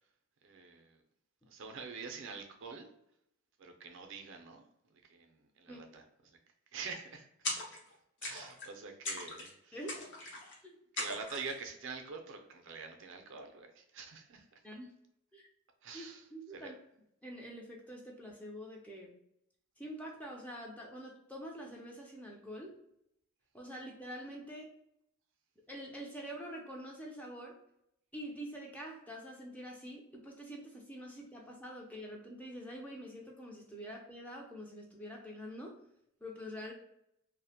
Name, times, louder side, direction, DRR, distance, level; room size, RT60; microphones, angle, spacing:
voice 1, 0.4-1.0 1.5-2.9 3.6-4.6 4.9-6.4 6.7-7.8 8.2-9.8 10.9-14.6 15.8-16.2 16.5-16.7, right 5 dB, 60° right, 4 dB, 0.4 m, -46 dB
sound 1, 7.4-7.9 8.2-8.7 9.0-9.5 9.9-10.5 11.0-11.6, left 2 dB, 55° left, 0.6 m, -40 dB
voice 2, 9.7-10.2 10.6-10.7 14.6-14.9 15.3-15.5 15.9-16.8 17.2-19.2 19.8-22.7 23.5-24.7 25.7-27.6 28.1-35.8 36.2-36.7, equal, 5° left, -1 dB, 0.4 m, -46 dB
2.4 x 2.1 x 2.7 m, 0.77 s
head